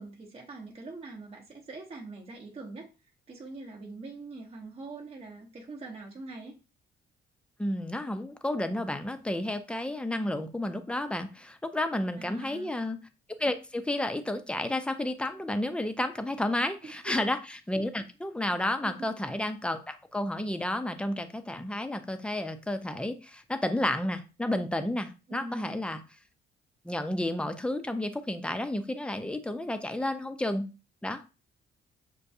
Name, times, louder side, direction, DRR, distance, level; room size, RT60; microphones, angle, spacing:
voice 1, 0.0-2.9 3.3-6.6 12.2-12.8 16.8-17.3 18.8-19.1 25.3-25.8, right 2 dB, 30° right, -2 dB, 0.8 m, -43 dB
voice 2, 7.6-13.1 13.4-17.4 17.7-26.0 26.8-30.7 31.0-31.2, left 1 dB, 5° left, 8 dB, 0.5 m, -31 dB
6.6 x 2.3 x 2.6 m, 0.31 s
cardioid pair, 90°, 20 cm